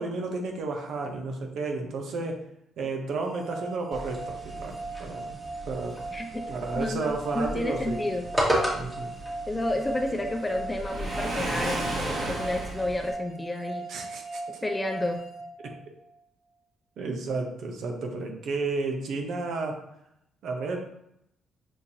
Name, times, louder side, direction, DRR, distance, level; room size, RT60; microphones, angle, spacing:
voice 1, 0.0-2.4 2.8-5.4 5.7-6.0 6.5-8.0 8.7-9.1 13.9-14.4 15.6-15.7 17.0-19.9 20.4-20.8, right 3 dB, 70° right, 2 dB, 0.8 m, -32 dB
sound 1, 3.3-16.2, right 3 dB, 30° right, 0.9 m, -39 dB
sound 2, 3.9-13.1, equal, 10° right, 1.3 m, -35 dB
voice 2, 6.1-6.4 6.8-8.3 9.5-13.9 14.6-15.2, left 1 dB, 15° left, 3 dB, 0.6 m, -30 dB
Waves surf, 10.8-12.9, right 1 dB, 50° right, 1.6 m, -31 dB
6.4 x 2.5 x 2.8 m, 0.76 s
cardioid pair, 90°, 0 cm